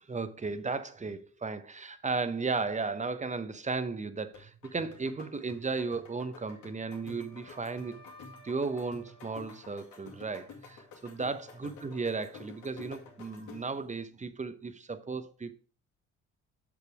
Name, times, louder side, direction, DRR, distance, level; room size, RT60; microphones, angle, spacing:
voice 1, 0.0-8.0 8.4-15.6, right 4 dB, 25° right, 0.9 m, -35 dB
sound 1, 4.3-13.8, left 4 dB, 85° left, 2.3 m, -51 dB
Wind instrument woodwind instrument, 6.4-10.5, right 1 dB, 15° left, 1.9 m, -58 dB
7.0 x 6.6 x 4.8 m
cardioid pair, 90°, 30 cm